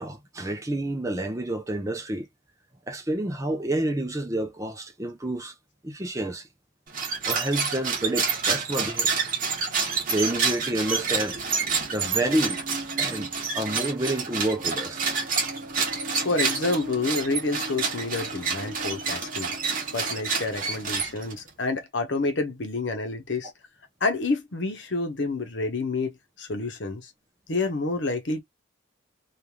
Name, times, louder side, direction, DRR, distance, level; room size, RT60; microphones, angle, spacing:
voice 1, 0.0-2.3 2.9-5.5 5.8-6.5 7.3-9.1 10.1-11.4 11.9-12.6 13.0-15.0, right 1 dB, 15° right, 0.6 m, -29 dB
sound 1, 6.9-21.5, right 5 dB, 45° right, 1.1 m, -28 dB
sound 2, 11.2-20.7, right 1 dB, 70° right, 0.9 m, -41 dB
voice 2, 16.2-19.5 19.9-23.5 24.0-27.1 27.5-28.4, left 3 dB, 60° left, 0.8 m, -28 dB
3.2 x 2.5 x 2.2 m
head